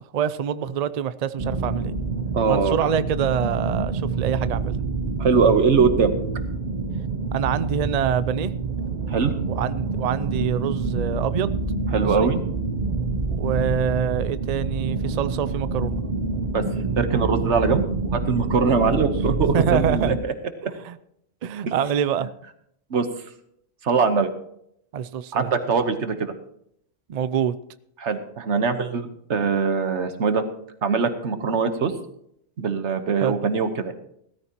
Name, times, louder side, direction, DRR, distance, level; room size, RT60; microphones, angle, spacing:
voice 1, 0.0-2.0 2.5-4.7 7.3-8.5 9.5-11.6 12.0-12.3 13.3-16.0 18.6-19.0 19.5-20.1 20.8-21.0 21.4-22.3 24.9-25.5 27.1-27.6 33.2-33.3, right 8 dB, 85° right, 15 dB, 0.3 m, -26 dB
sound 1, 1.4-20.2, right 3 dB, 40° right, 0.8 m, -27 dB
voice 2, 2.3-2.8 5.2-6.1 9.1-9.3 11.9-12.4 16.5-16.6 16.9-20.3 20.6-20.7 22.9-23.1 23.8-24.3 25.3-26.3 28.0-30.4 30.8-31.9 32.6-33.9, right 5 dB, 60° right, 9 dB, 1.4 m, -22 dB
17.0 x 13.5 x 3.0 m, 0.73 s
omnidirectional pair, 1.4 m